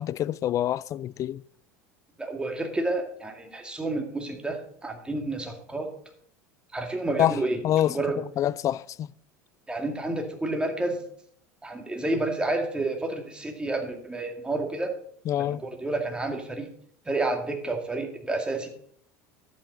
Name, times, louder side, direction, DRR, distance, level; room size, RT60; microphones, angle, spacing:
voice 1, 0.0-1.4 7.2-7.4 7.6-9.1 15.3-15.6, left 12 dB, 40° left, 0.4 m, -26 dB
voice 2, 2.2-5.9 6.7-7.6 7.9-8.2 9.7-11.0 11.6-14.9 15.4-16.7 17.1-18.7, right 2 dB, 10° right, 2.3 m, -30 dB
12.0 x 8.3 x 4.0 m
hypercardioid pair, 80°, 9 cm